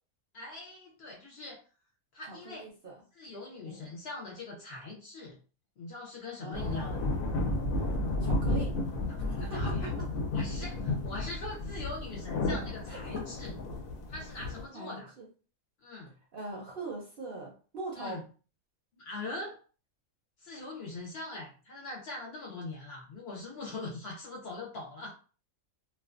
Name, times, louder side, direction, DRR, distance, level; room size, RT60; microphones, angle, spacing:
voice 1, 0.3-1.6 2.1-2.7 3.1-5.4 5.8-7.0 8.6-8.7 9.1-9.9 10.3-13.5 14.1-15.1 15.8-16.1 18.0-18.2 18.9-19.6 20.4-25.1, left 2 dB, 60° left, -2 dB, 0.8 m, -42 dB
voice 2, 2.3-2.9 3.6-3.9 6.4-7.1 8.2-8.8 9.2-10.1 12.9-13.3 14.7-15.3 16.3-18.2, right 2 dB, 55° right, -2 dB, 0.6 m, -42 dB
sound 1, 6.5-14.6, left 2 dB, 85° left, 1.0 m, -32 dB
2.5 x 2.2 x 2.4 m, 0.37 s
omnidirectional pair, 1.4 m